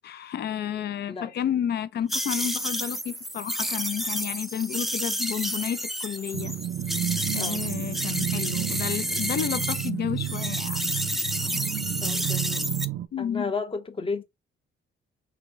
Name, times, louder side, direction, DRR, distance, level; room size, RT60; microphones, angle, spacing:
voice 1, 0.0-6.5 7.3-10.9 13.1-13.5, left 9 dB, 55° left, 0.5 m, -31 dB
sound 1, 2.1-9.9 10.2-12.9, equal, ahead, 0.5 m, -30 dB
sound 2, 6.3-13.1, right 12 dB, 70° right, 0.6 m, -31 dB
voice 2, 7.4-7.7 12.0-12.7 13.2-14.2, left 4 dB, 25° left, 0.8 m, -33 dB
4.2 x 2.9 x 3.8 m
cardioid pair, 90°, 20 cm